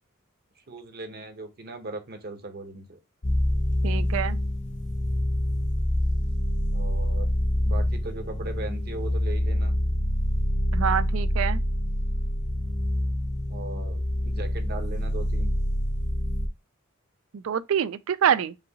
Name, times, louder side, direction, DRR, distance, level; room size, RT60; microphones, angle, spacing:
voice 1, 0.7-3.0 6.7-7.3 7.6-9.7 13.5-15.5, right 2 dB, 50° right, 0.8 m, -38 dB
sound 1, 3.2-16.5, equal, 35° left, 0.6 m, -26 dB
voice 2, 3.8-4.4 10.7-11.6 17.3-18.6, right 8 dB, 70° right, 0.4 m, -26 dB
4.9 x 2.8 x 2.8 m
head